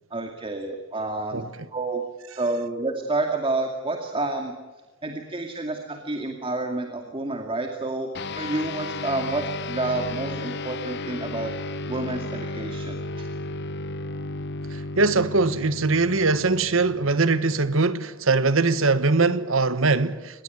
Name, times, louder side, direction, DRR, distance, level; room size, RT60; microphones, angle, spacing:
voice 1, 0.1-2.0 2.4-4.5 5.0-8.1 8.4-11.5 11.9-13.3, right 2 dB, 25° right, 2.4 m, -29 dB
sound 1, 8.1-17.9, left 2 dB, 55° left, 1.0 m, -34 dB
voice 2, 15.0-20.4, right 3 dB, 75° right, 1.4 m, -21 dB
25.5 x 20.5 x 9.3 m
head